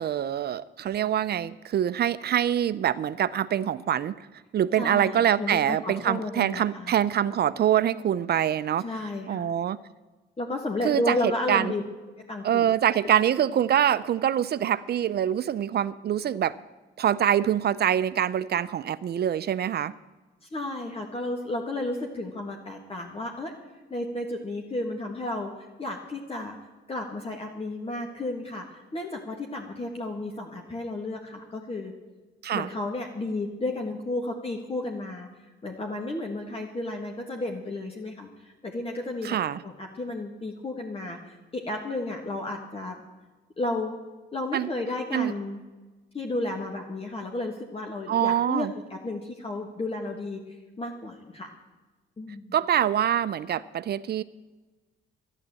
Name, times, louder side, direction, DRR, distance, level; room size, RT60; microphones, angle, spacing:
voice 1, 0.0-4.2 4.5-8.9 9.3-9.8 10.8-11.7 12.4-16.6 17.0-19.9 32.4-32.7 39.2-39.6 44.5-44.7 45.1-45.3 48.1-48.7 52.5-54.2, right 10 dB, 55° right, 16 dB, 0.6 m, -25 dB
voice 2, 4.8-6.9 8.8-9.4 10.4-11.8 12.3-12.7 20.5-23.5 23.9-25.5 25.8-26.5 26.9-31.9 32.5-35.3 35.6-39.4 39.6-41.4 41.6-43.0 43.6-44.0 44.3-45.6 46.1-50.4 50.8-51.5 52.2-52.5, left 2 dB, 30° left, 1 dB, 1.7 m, -32 dB
12.0 x 10.5 x 7.6 m, 1.2 s
cardioid pair, 90°, 20 cm